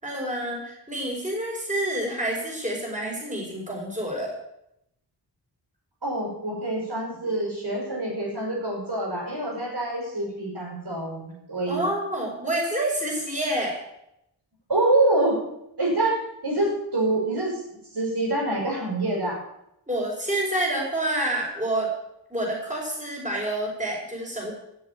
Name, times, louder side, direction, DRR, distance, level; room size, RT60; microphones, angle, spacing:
voice 1, 0.0-4.4 11.7-13.8 19.9-21.9 22.3-24.5, right 1 dB, 15° right, -1 dB, 5.2 m, -28 dB
voice 2, 6.0-11.9 14.7-15.4 15.8-17.5 17.9-19.4, right 2 dB, 60° right, -3 dB, 5.6 m, -26 dB
14.0 x 7.1 x 8.6 m, 0.80 s
wide cardioid pair, 50°, 44 cm